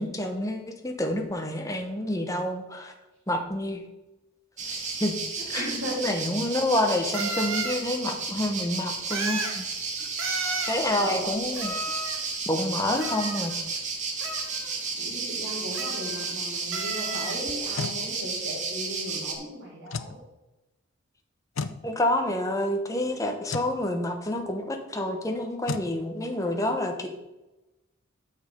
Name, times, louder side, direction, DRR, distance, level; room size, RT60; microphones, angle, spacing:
voice 1, 0.0-2.9 3.3-3.8 5.0-5.2 5.5-5.7 6.0-9.6 10.7-11.7 12.5-13.5 21.8-27.1, left 1 dB, 15° left, 4 dB, 1.1 m, -28 dB
sound 1, 4.6-19.3, right 4 dB, 35° right, 1.5 m, -33 dB
voice 2, 5.5-6.0 11.0-11.3 15.0-20.2, equal, 60° right, -9 dB, 3.7 m, -36 dB
sound 2, 5.8-5.9 7.1-7.8 9.1-9.6 10.2-10.8 11.5-12.3 13.0-13.8 14.2-14.8 15.7-16.4 16.7-17.4, right 3 dB, 85° right, 1.5 m, -33 dB
sound 3, 17.5-18.0 19.9-20.2 21.6-21.8 23.5-23.7 25.7-25.9, left 4 dB, 75° left, 0.6 m, -32 dB
8.7 x 6.5 x 5.2 m, 1.0 s
head